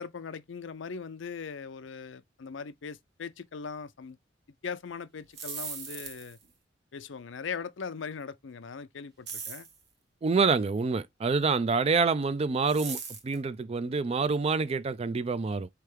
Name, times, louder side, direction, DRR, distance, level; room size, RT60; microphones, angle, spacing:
voice 1, 0.0-4.2 4.6-6.4 6.9-9.7, left 5 dB, 70° left, 0.5 m, -40 dB
sound 1, 5.2-6.5 9.3-9.8 12.7-13.4, right 6 dB, 60° right, 1.3 m, -39 dB
voice 2, 10.2-15.7, right 4 dB, 30° right, 0.4 m, -27 dB
4.6 x 3.3 x 3.2 m
head